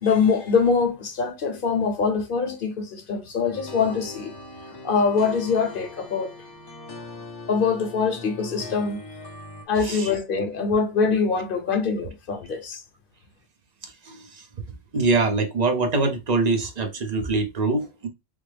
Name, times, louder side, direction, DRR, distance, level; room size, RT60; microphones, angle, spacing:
voice 1, 0.0-4.3 4.8-6.3 7.5-9.0 9.7-12.8, left 5 dB, 60° left, 0.8 m, -23 dB
sound 1, 3.5-9.7, left 3 dB, 30° left, 0.4 m, -40 dB
voice 2, 13.8-14.4 14.9-18.1, right 3 dB, 45° right, 0.7 m, -24 dB
3.4 x 2.1 x 3.2 m
omnidirectional pair, 1.1 m